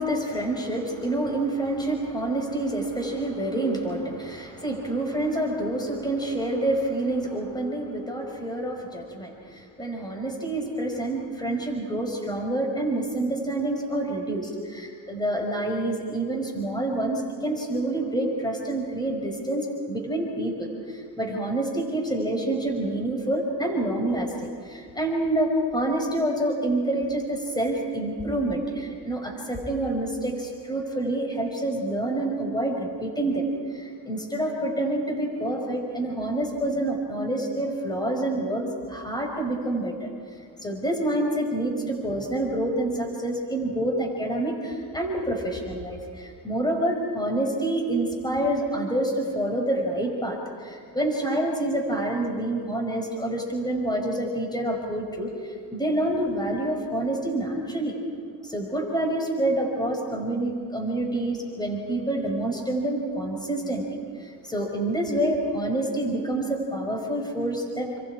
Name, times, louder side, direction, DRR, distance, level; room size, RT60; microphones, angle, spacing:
voice 1, 0.0-33.5 33.7-40.1 40.6-55.3 55.7-57.9 58.4-63.8 64.2-68.0, right 1 dB, 10° left, 1 dB, 5.2 m, -27 dB
28.5 x 25.5 x 4.9 m, 2.3 s
supercardioid pair, 85°, 48 cm